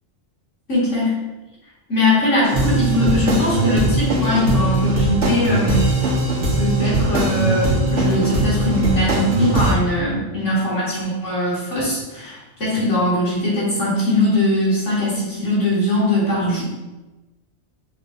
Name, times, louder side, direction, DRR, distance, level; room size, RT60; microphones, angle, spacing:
voice 1, 0.7-1.1 1.9-5.9 6.6-16.6, left 1 dB, 85° left, -7 dB, 2.6 m, -20 dB
sound 1, 2.4-9.7, right 2 dB, 70° right, 1.6 m, -20 dB
6.4 x 6.1 x 2.6 m, 1.1 s
omnidirectional pair, 1.2 m